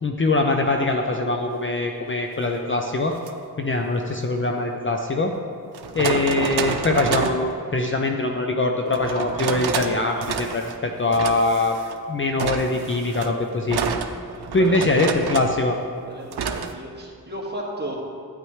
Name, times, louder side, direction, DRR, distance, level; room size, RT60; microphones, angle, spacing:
voice 1, 0.0-3.1 3.6-5.3 5.9-11.8 12.1-13.8 14.5-15.8, left 2 dB, 35° left, 2 dB, 0.5 m, -22 dB
sound 1, 3.1-3.3 4.9-5.0 5.7-7.5 8.9-9.9 10.2-10.8 11.1-12.0 12.4-15.6 16.3-16.7, right 6 dB, 90° right, 0.6 m, -28 dB
voice 2, 14.2-15.2 16.0-18.0, right 1 dB, 25° right, -3 dB, 1.7 m, -35 dB
12.0 x 9.1 x 3.2 m, 2.4 s
wide cardioid pair, 145°, 37 cm